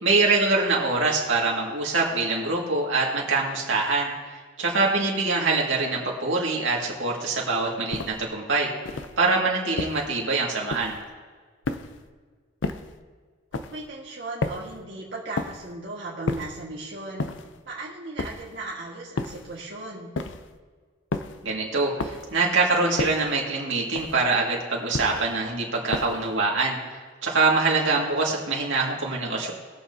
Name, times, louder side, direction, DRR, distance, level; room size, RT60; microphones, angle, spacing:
voice 1, 0.0-4.1 4.6-8.7 9.2-11.0 21.4-26.8 27.2-29.5, right 3 dB, 85° right, -2 dB, 2.1 m, -24 dB
sound 1, 7.9-8.3 8.8-9.2 9.8-10.2 10.7-11.1 11.6-12.1 12.6-13.0 13.5-13.9 14.4-14.8 15.4-15.7 16.3-16.7 17.2-17.6 18.2-18.6 19.2-19.6 20.2-20.6 21.1-21.5 22.0-22.4 23.0-23.4 24.0-24.4 24.9-25.4 25.9-26.3, left 3 dB, 75° left, 0.6 m, -32 dB
voice 2, 13.5-17.3 17.7-20.1, right 2 dB, 65° right, -5 dB, 1.7 m, -37 dB
21.5 x 7.2 x 2.8 m, 1.5 s
head